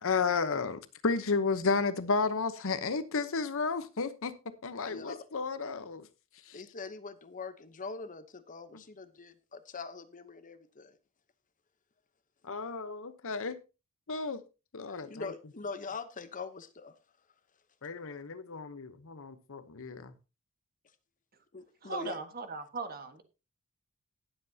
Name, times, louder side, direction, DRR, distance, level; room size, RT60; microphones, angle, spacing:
voice 1, 0.0-4.3 4.6-6.1 6.5-6.6 8.7-8.8 12.4-13.6 14.1-14.4 14.7-15.3 17.8-20.1, left 4 dB, 65° left, 0.9 m, -32 dB
voice 2, 6.5-10.9 14.9-16.9 21.5-22.2, left 4 dB, 35° left, 0.9 m, -43 dB
voice 3, 21.8-23.2, right 4 dB, 45° right, 1.5 m, -38 dB
18.5 x 7.8 x 2.8 m
head